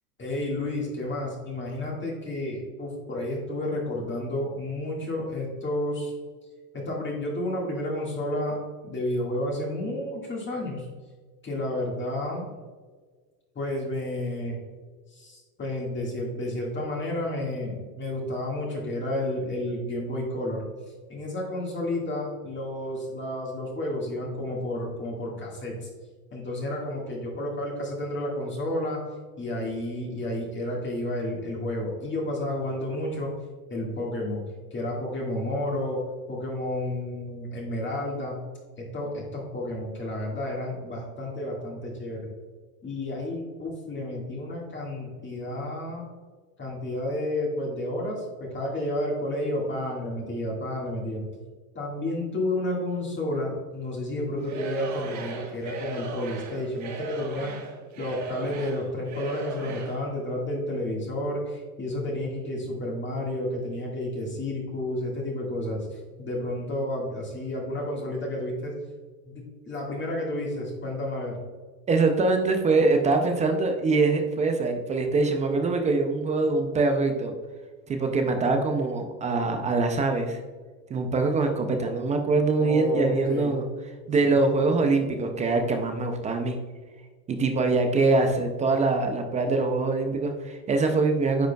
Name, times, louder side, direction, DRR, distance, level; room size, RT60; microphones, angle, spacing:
voice 1, 0.2-6.1 6.7-8.6 8.8-10.9 11.4-12.5 13.6-14.6 15.1-20.6 21.1-25.9 26.3-29.0 29.4-33.3 33.7-34.4 34.7-36.0 36.3-38.4 38.8-42.3 42.8-46.0 46.6-51.3 51.8-57.5 58.0-68.7 69.3-71.4 82.6-83.6 84.2-84.4, left 1 dB, 25° left, -3 dB, 1.7 m, -31 dB
Singing / Crowd, 54.4-60.1, right 4 dB, 35° right, 1.2 m, -38 dB
voice 2, 71.9-77.3 77.9-80.4 80.9-83.6 84.1-86.6 87.3-91.5, right 3 dB, 15° right, 5 dB, 0.3 m, -23 dB
9.2 x 5.0 x 2.2 m, 1.5 s
supercardioid pair, 115°, 48 cm